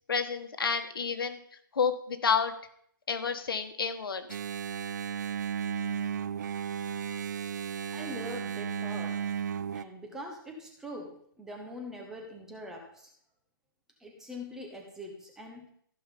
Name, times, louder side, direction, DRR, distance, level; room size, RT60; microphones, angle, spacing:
voice 1, 0.1-1.4 1.7-2.5 3.1-4.4, left 6 dB, 80° left, 7 dB, 1.7 m, -30 dB
Engine, 4.3-9.8, right 7 dB, 55° right, 0.4 m, -34 dB
voice 2, 7.9-9.2 9.7-13.1 14.0-15.7, equal, 5° right, 2 dB, 1.0 m, -43 dB
14.5 x 5.6 x 5.4 m, 0.65 s
hypercardioid pair, 170°, 12 cm